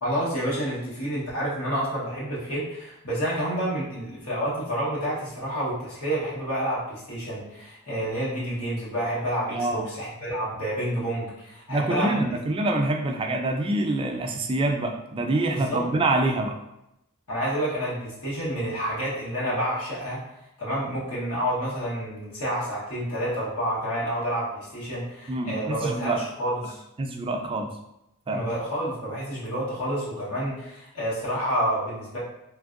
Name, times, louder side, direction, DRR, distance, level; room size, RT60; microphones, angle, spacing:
voice 1, 0.0-12.2 15.5-15.8 17.3-20.2 20.6-26.8 28.3-32.2, equal, 85° left, -7 dB, 1.3 m, -29 dB
voice 2, 9.5-9.8 11.7-16.5 25.3-26.2 27.0-27.7 28.3-28.4, right 2 dB, 25° right, 3 dB, 0.3 m, -26 dB
3.3 x 2.5 x 2.5 m, 0.85 s
head